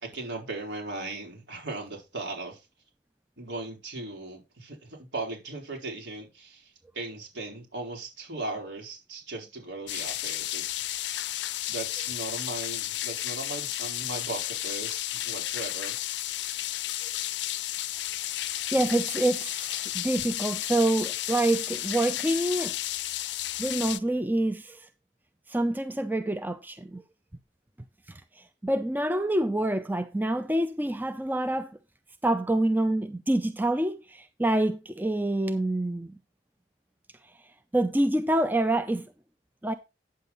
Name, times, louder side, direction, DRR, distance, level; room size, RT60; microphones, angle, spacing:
voice 1, 0.0-2.6 3.4-10.8 11.7-15.9, right 2 dB, 80° right, 3.8 m, -38 dB
sound 1, 9.9-24.0, left 14 dB, 75° left, 0.4 m, -32 dB
voice 2, 18.7-22.8 23.6-24.8 25.5-27.0 28.6-31.8 32.2-36.2 37.7-39.1 39.6-39.7, right 1 dB, 10° right, 0.5 m, -26 dB
9.0 x 7.0 x 3.9 m
head